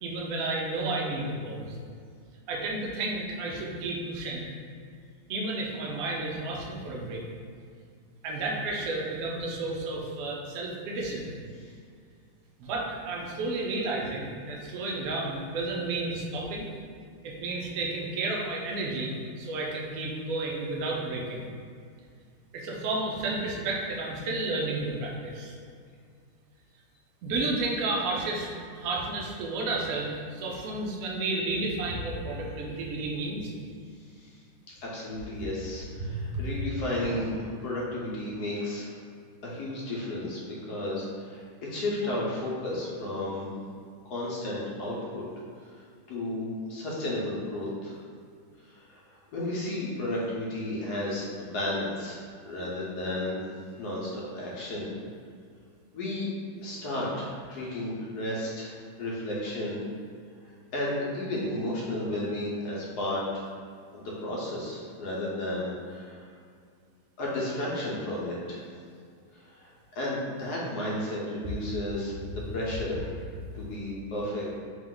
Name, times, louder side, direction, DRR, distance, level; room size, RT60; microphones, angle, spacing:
voice 1, 0.0-1.7 2.5-4.5 5.3-7.2 8.2-11.4 12.6-16.7 17.2-21.5 22.5-25.5 27.2-28.5 28.7-33.5 36.0-36.1, right 2 dB, 75° right, -2 dB, 0.8 m, -32 dB
voice 2, 34.8-38.9 39.4-40.4 40.7-41.4 41.7-43.5 44.1-45.2 46.1-48.0 48.7-49.0 49.3-52.2 52.4-53.4 53.8-54.9 55.9-56.3 56.6-59.8 60.7-63.5 63.9-66.3 67.2-68.6 69.6-73.1 73.5-74.5, left 1 dB, 65° left, -5 dB, 1.1 m, -33 dB
3.5 x 3.0 x 3.7 m, 2.2 s
omnidirectional pair, 2.3 m